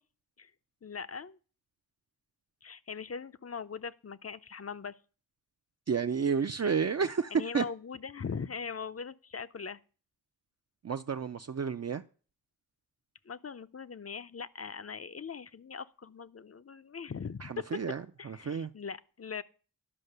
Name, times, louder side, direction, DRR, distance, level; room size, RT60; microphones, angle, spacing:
voice 1, 0.8-1.4 2.6-5.0 7.3-9.8 13.3-17.8 18.2-19.4, left 6 dB, 45° left, 0.6 m, -40 dB
voice 2, 5.9-7.6 10.8-12.0 17.4-18.7, right 6 dB, 45° right, 0.5 m, -31 dB
11.0 x 5.6 x 6.6 m
wide cardioid pair, 60°, 35 cm